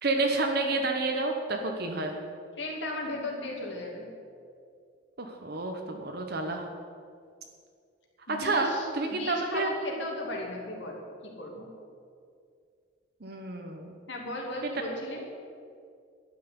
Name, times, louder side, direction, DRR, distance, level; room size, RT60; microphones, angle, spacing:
voice 1, 0.0-2.2 5.2-6.7 8.3-8.7 8.9-9.7 13.2-14.0, right 3 dB, 50° right, 3 dB, 1.0 m, -29 dB
voice 2, 2.6-4.1 8.3-11.7 14.1-15.2, left 1 dB, 60° left, 0 dB, 2.5 m, -36 dB
11.5 x 6.6 x 9.4 m, 2.3 s
head